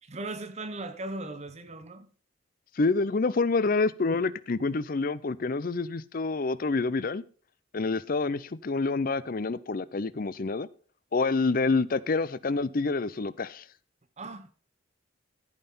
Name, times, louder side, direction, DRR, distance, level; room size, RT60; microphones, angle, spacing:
voice 1, 0.0-2.1 14.2-14.5, right 2 dB, 35° right, 0.9 m, -38 dB
voice 2, 2.8-7.2 7.7-10.7 11.1-13.6, left 3 dB, 45° left, 0.5 m, -27 dB
14.5 x 5.6 x 5.5 m
head